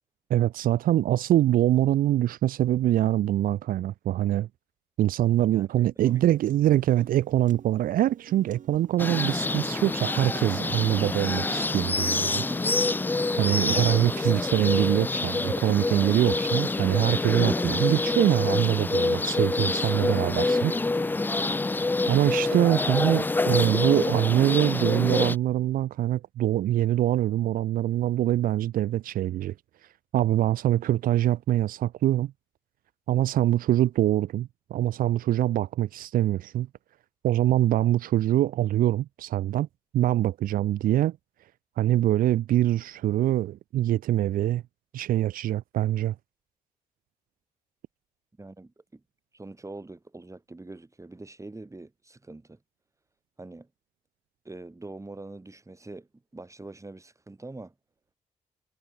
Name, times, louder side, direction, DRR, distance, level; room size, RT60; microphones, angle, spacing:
voice 1, 0.3-4.5 5.0-12.4 13.4-20.7 22.1-29.5 30.1-32.3 33.1-36.7 37.2-39.7 39.9-41.2 41.8-44.6 44.9-46.1, right 13 dB, 80° right, 1.1 m, -24 dB
voice 2, 5.5-6.2 22.5-22.9 48.4-49.0 49.3-52.6 53.4-53.7 54.4-57.7, right 2 dB, 20° right, 7.0 m, -44 dB
Piano, 6.0-14.0, right 8 dB, 65° right, 5.6 m, -49 dB
sound 1, 9.0-25.4, left 3 dB, 15° left, 0.3 m, -27 dB
cardioid pair, 65°, 14 cm